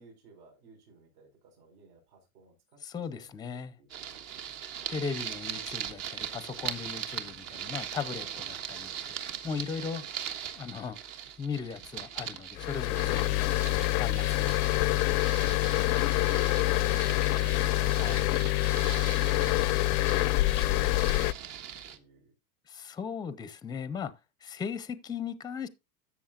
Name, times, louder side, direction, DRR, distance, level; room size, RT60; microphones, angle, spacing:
voice 1, 0.0-2.6 2.9-4.5 14.6-15.0 15.8-18.2 18.4-22.4, right 4 dB, 75° right, 5.5 m, -56 dB
voice 2, 2.8-3.8 4.9-10.2 10.5-11.0 11.4-13.6 14.0-14.9 18.0-18.2 22.7-24.1 24.4-25.7, left 6 dB, 10° left, 0.5 m, -38 dB
sound 1, 3.9-22.0, right 9 dB, 55° right, 1.5 m, -40 dB
sound 2, 12.6-21.3, left 19 dB, 80° left, 0.5 m, -26 dB
13.5 x 7.2 x 2.5 m
supercardioid pair, 145°, 44 cm